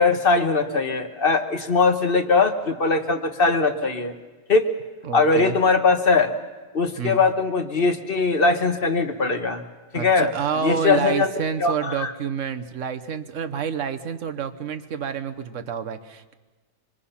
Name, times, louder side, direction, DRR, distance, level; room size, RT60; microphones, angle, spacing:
voice 1, 0.0-4.1 4.5-4.7 5.1-6.3 6.7-9.6 9.9-11.3 11.6-12.1, left 4 dB, 30° left, 7 dB, 1.3 m, -21 dB
voice 2, 5.0-5.6 7.0-7.2 9.9-16.3, right 7 dB, 45° right, 9 dB, 1.2 m, -28 dB
26.5 x 23.5 x 5.7 m, 1.3 s
omnidirectional pair, 2.1 m